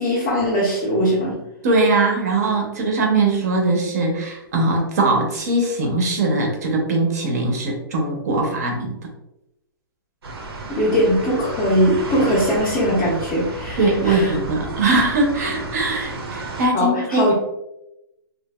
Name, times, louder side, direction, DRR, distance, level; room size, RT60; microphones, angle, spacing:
voice 1, 0.0-1.4 10.7-14.4 16.7-17.3, equal, 15° left, -7 dB, 0.4 m, -20 dB
voice 2, 1.6-8.9 13.8-17.3, right 2 dB, 45° right, 2 dB, 0.6 m, -21 dB
sound 1, 10.2-16.7, right 2 dB, 90° right, 0.7 m, -33 dB
2.8 x 2.4 x 2.2 m, 0.89 s
hypercardioid pair, 165°, 13 cm